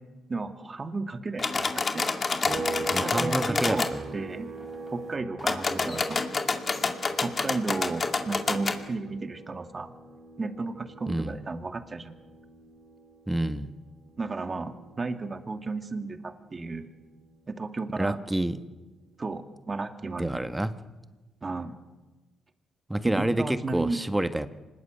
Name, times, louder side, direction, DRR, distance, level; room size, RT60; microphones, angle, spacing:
voice 1, 0.3-2.1 3.0-3.9 4.1-4.5 4.9-6.3 7.2-9.9 10.4-12.2 14.2-16.9 17.5-18.2 19.2-20.4 21.4-21.8 23.0-24.0, right 3 dB, 35° right, 7 dB, 2.2 m, -33 dB
sound 1, 1.4-3.9 5.4-8.8, left 4 dB, 40° left, 2.3 m, -28 dB
sound 2, 2.5-16.0 16.3-18.6, right 3 dB, 50° right, 2.8 m, -42 dB
voice 2, 2.9-4.0 11.1-11.3 13.3-13.7 18.0-18.6 20.2-20.7 22.9-24.5, right 1 dB, 10° right, 10 dB, 1.4 m, -28 dB
25.5 x 20.5 x 8.2 m, 1.2 s
cardioid pair, 70°, 0 cm